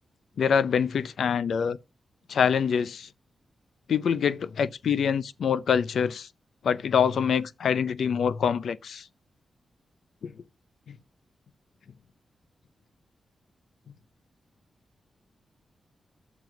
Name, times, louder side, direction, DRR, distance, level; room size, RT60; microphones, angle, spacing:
voice 1, 0.4-1.8 2.3-3.1 3.9-6.3 6.6-9.1 10.2-10.3 10.9-11.0, left 7 dB, 75° left, 0.6 m, -25 dB
7.2 x 6.1 x 5.8 m
wide cardioid pair, 105°, 0 cm